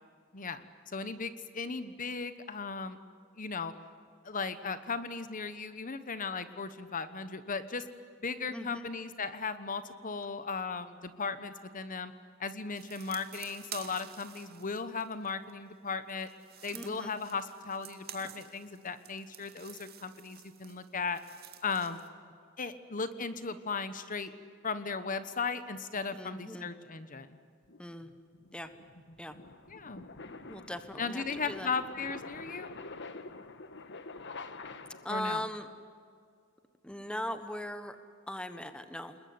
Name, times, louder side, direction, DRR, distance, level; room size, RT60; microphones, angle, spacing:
voice 1, 0.3-3.0 3.4-3.7 4.2-7.9 8.2-12.1 12.4-16.3 16.6-21.2 21.6-22.0 22.6-24.3 24.6-27.4 29.7-30.1 31.0-32.7 35.1-35.4, left 4 dB, 40° left, 12 dB, 1.2 m, -37 dB
voice 2, 8.5-8.9 16.7-17.2 26.1-26.7 27.8-28.1 28.5-28.7 29.2-29.4 30.5-31.7 35.0-35.7 36.8-38.0 38.3-39.2, left 1 dB, 5° left, 10 dB, 1.3 m, -39 dB
sound 1, 12.7-15.5 16.1-22.1, right 10 dB, 50° right, 2.3 m, -50 dB
sound 2, 27.7-35.3, left 3 dB, 55° left, 1.6 m, -46 dB
30.0 x 20.5 x 9.6 m, 2.3 s
head